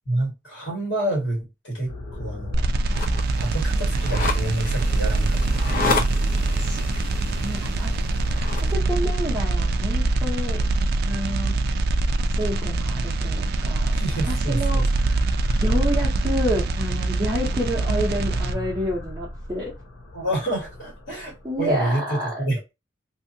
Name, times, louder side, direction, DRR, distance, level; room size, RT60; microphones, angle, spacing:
voice 1, 0.1-2.7 3.4-5.6 13.9-14.9 20.1-22.7, right 1 dB, 60° left, 1.5 m, -28 dB
sound 1, 1.9-21.7, left 2 dB, 80° left, 0.9 m, -40 dB
sound 2, 2.5-18.5, right 2 dB, 50° right, 0.3 m, -23 dB
sound 3, 2.9-8.7, left 3 dB, 45° left, 0.6 m, -31 dB
voice 2, 6.6-7.9 8.4-10.6 11.1-11.5 12.4-15.2 15.6-19.7 21.4-22.4, equal, 15° right, 0.7 m, -29 dB
2.7 x 2.7 x 2.6 m
head